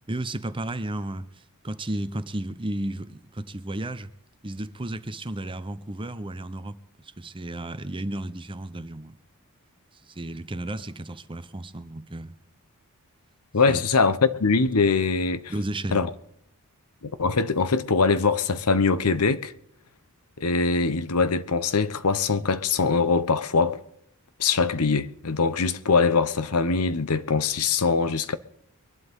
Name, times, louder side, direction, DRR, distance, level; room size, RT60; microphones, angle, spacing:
voice 1, 0.1-1.3 1.6-4.1 4.4-6.8 7.0-9.2 10.0-12.3 13.7-13.8 15.5-16.0, right 1 dB, 25° right, 0.8 m, -33 dB
voice 2, 13.5-15.5 15.9-16.1 17.0-19.5 20.4-23.8 24.4-28.4, left 4 dB, 90° left, 1.0 m, -22 dB
24.0 x 11.5 x 3.7 m
head